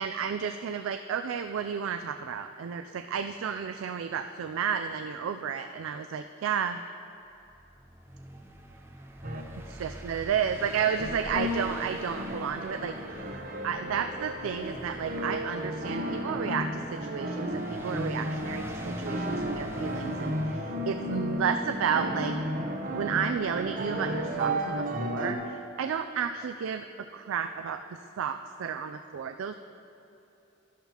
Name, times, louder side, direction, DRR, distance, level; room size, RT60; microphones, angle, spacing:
voice 1, 0.0-6.8 9.7-22.3 22.9-27.8 28.2-29.5, right 7 dB, 85° right, 8 dB, 0.3 m, -32 dB
sound 1, 7.3-22.5, right 1 dB, 10° right, 0.5 m, -46 dB
sound 2, 9.2-9.4 11.0-25.3, equal, 40° right, 0.8 m, -33 dB
12.0 x 11.0 x 2.9 m, 2.9 s
head